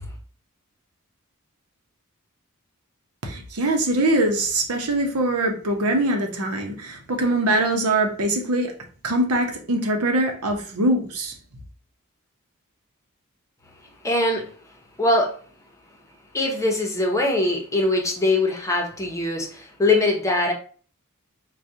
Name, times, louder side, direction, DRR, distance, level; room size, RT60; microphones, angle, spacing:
voice 1, 3.2-8.7 9.0-11.3, right 1 dB, 80° right, 0.8 m, -23 dB
voice 2, 14.0-14.5 15.0-15.4 16.3-20.5, left 2 dB, 15° left, 0.8 m, -22 dB
4.8 x 2.3 x 2.7 m
head